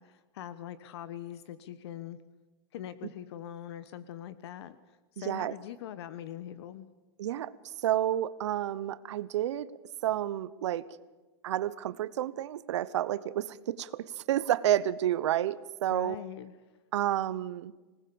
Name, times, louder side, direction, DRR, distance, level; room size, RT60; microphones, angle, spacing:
voice 1, 0.0-2.2 2.7-6.9 15.9-16.5, left 11 dB, 65° left, 14 dB, 1.2 m, -42 dB
voice 2, 5.2-5.5 7.2-7.5 7.8-9.7 10.0-10.8 11.4-16.2 16.9-17.7, right 12 dB, 90° right, 16 dB, 1.0 m, -30 dB
25.5 x 19.0 x 7.1 m, 1.2 s
supercardioid pair, 165°, 15 cm